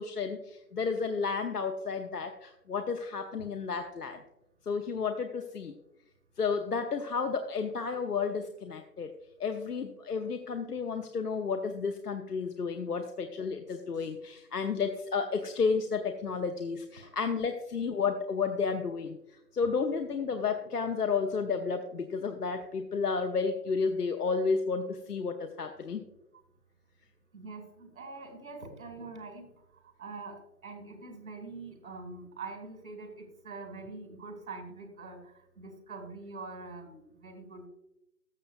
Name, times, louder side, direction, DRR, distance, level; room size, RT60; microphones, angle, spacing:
voice 1, 0.0-4.2 4.7-5.7 6.4-9.1 9.4-19.2 19.5-26.0, left 5 dB, 70° left, 6 dB, 0.9 m, -32 dB
voice 2, 27.3-29.5 29.7-37.7, right 3 dB, 55° right, 4 dB, 2.4 m, -44 dB
14.0 x 6.6 x 2.5 m, 0.84 s
figure-of-eight pair, 145°, 48 cm